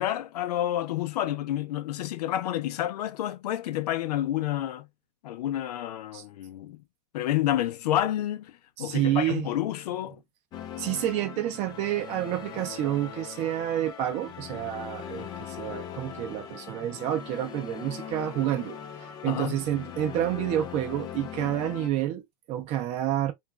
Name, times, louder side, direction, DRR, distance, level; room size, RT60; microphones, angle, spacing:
voice 1, 0.0-4.9 5.2-6.8 7.1-8.5 8.8-10.2 19.3-19.6, left 12 dB, 75° left, 0.5 m, -29 dB
voice 2, 8.8-9.5 10.8-23.3, right 12 dB, 35° right, 0.5 m, -29 dB
sound 1, 10.5-21.9, left 8 dB, 20° left, 0.3 m, -40 dB
3.0 x 2.4 x 2.3 m
supercardioid pair, 145°, 20 cm